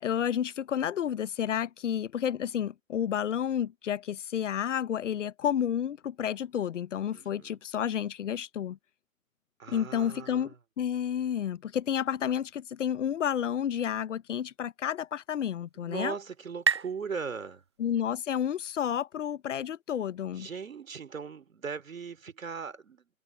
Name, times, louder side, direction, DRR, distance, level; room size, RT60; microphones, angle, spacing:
voice 1, 0.0-8.8 9.7-10.5 10.8-16.1 17.8-20.5, left 9 dB, 60° left, 0.7 m, -30 dB
voice 2, 7.1-7.6 9.6-10.6 15.8-17.6 20.3-23.1, right 5 dB, 70° right, 3.1 m, -39 dB
sound 1, 15.2-18.6, right 6 dB, 20° right, 0.3 m, -36 dB
figure-of-eight pair, 115°, 41 cm